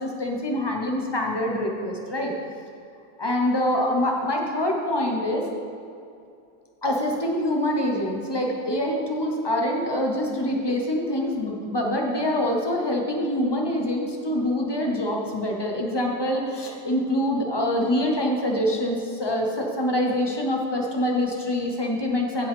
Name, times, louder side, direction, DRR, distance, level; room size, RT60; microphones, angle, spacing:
voice 1, 0.0-2.3 3.2-5.5 6.8-22.5, left 1 dB, 20° left, 0 dB, 0.7 m, -25 dB
16.0 x 5.3 x 3.6 m, 2.5 s
omnidirectional pair, 1.8 m